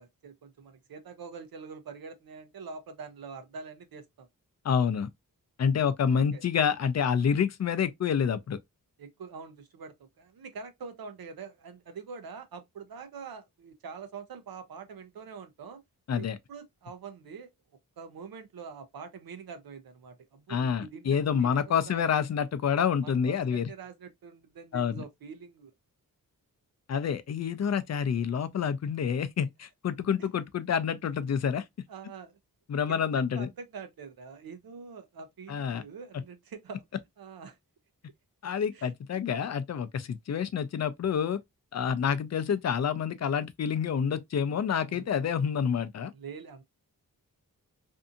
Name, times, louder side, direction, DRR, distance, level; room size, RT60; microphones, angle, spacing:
voice 1, 0.0-4.3 6.1-6.4 9.0-15.8 16.2-17.5 18.0-22.0 23.0-25.7 31.9-32.4 32.9-36.8 37.2-37.6 38.7-39.2 44.9-45.1 46.1-46.6, right 5 dB, 90° right, 0.6 m, -45 dB
voice 2, 4.6-5.1 5.6-8.6 16.1-16.4 20.5-23.7 24.7-25.0 26.9-31.6 32.7-33.5 35.5-35.8 36.1-36.2 38.4-41.4 41.7-46.1, left 7 dB, 50° left, 0.4 m, -28 dB
2.6 x 2.5 x 2.4 m
wide cardioid pair, 115°, 35 cm